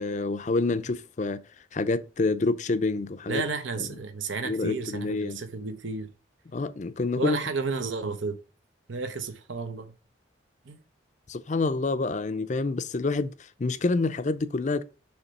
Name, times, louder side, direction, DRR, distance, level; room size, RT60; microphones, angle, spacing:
voice 1, 0.0-1.4 1.7-3.4 3.8-4.0 4.4-5.4 6.5-7.4 11.3-13.3 13.6-14.8, left 3 dB, 40° left, 0.5 m, -27 dB
voice 2, 3.3-6.1 7.2-8.4 8.9-9.9 10.7-10.8, right 4 dB, 80° right, 1.0 m, -32 dB
7.0 x 3.3 x 5.3 m
head